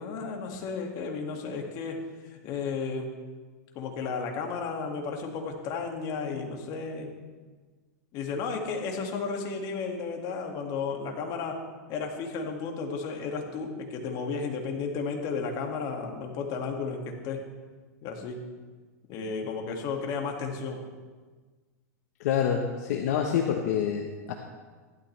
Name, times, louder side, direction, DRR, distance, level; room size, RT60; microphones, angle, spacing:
voice 1, 0.0-3.1 3.8-7.1 8.1-11.6 11.9-17.4 18.0-18.4 19.1-20.8, left 5 dB, 45° left, 2 dB, 2.1 m, -33 dB
voice 2, 22.2-24.3, left 8 dB, 65° left, 3 dB, 1.1 m, -27 dB
15.5 x 12.5 x 3.4 m, 1.4 s
hypercardioid pair, 120°, 9 cm